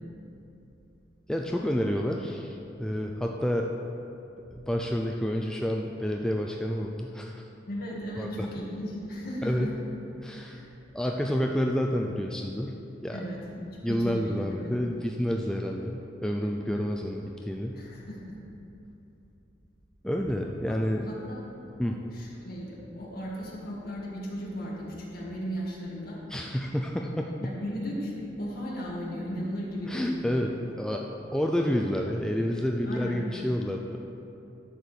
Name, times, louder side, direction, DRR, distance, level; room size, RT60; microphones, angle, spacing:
voice 1, 1.3-3.7 4.5-7.5 8.2-8.5 9.4-9.7 10.2-10.6 10.9-12.7 13.0-13.2 13.8-17.8 20.0-21.1 21.8-22.0 26.3-27.5 29.9-34.0, equal, 5° left, 1 dB, 0.3 m, -29 dB
voice 2, 7.7-9.7 10.4-10.7 13.1-14.8 17.7-18.3 21.0-21.4 22.1-26.2 27.4-30.1 32.9-33.2, equal, 55° left, -4 dB, 1.9 m, -36 dB
11.0 x 4.6 x 6.7 m, 2.9 s
head